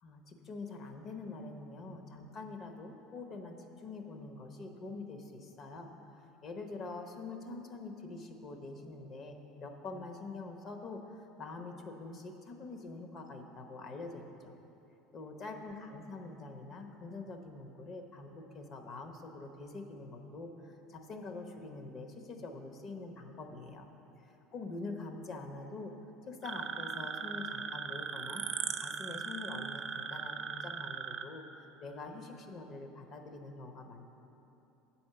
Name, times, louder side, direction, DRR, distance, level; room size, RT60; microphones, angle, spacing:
voice 1, 0.0-5.9 6.4-14.5 15.1-23.9 24.5-25.9 26.3-28.5 28.8-34.1, left 3 dB, 45° left, 5 dB, 0.8 m, -45 dB
sound 1, 26.4-31.2, right 6 dB, 35° right, 0.5 m, -39 dB
8.1 x 4.3 x 6.7 m, 3.0 s
supercardioid pair, 105°, 0 cm